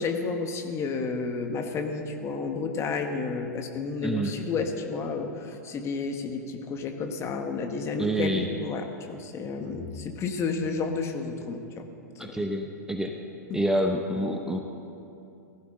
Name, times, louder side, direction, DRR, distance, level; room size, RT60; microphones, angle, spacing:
voice 1, 0.0-11.9 12.2-12.5 13.5-13.6, left 4 dB, 30° left, 5 dB, 1.5 m, -31 dB
voice 2, 4.0-4.3 8.0-8.5 12.2-13.1 13.5-14.6, right 1 dB, 5° right, 3 dB, 1.0 m, -27 dB
18.5 x 15.0 x 3.8 m, 2.7 s
figure-of-eight pair, 100°, 9 cm